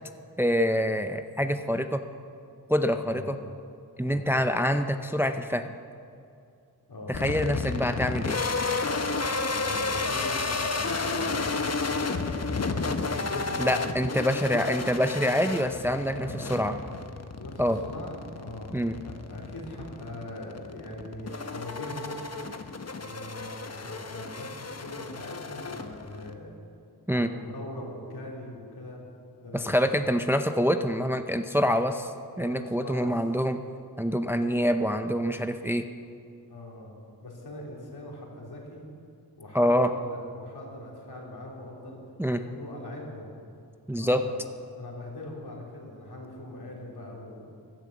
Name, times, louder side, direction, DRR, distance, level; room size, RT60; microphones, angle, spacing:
voice 1, 0.4-2.0 2.7-3.4 4.0-5.7 7.1-8.4 13.6-16.8 17.6-17.8 18.7-19.0 27.1-27.3 29.5-32.1 32.4-33.6 34.0-35.9 39.5-39.9 42.2-42.4 43.9-44.2, equal, 5° right, 8 dB, 0.6 m, -26 dB
voice 2, 6.9-7.2 9.5-14.0 14.4-14.8 16.2-16.6 17.4-18.7 19.0-22.3 23.0-26.5 27.1-29.0 29.4-30.0 32.3-33.1 34.3-34.7 36.5-36.9 37.2-38.9 39.4-42.0 42.3-43.3 43.9-44.4 44.8-47.4, left 1 dB, 70° left, -2 dB, 3.6 m, -41 dB
sound 1, 7.1-26.3, left 3 dB, 40° left, 1.0 m, -32 dB
15.5 x 10.5 x 7.4 m, 2.5 s
wide cardioid pair, 65°, 40 cm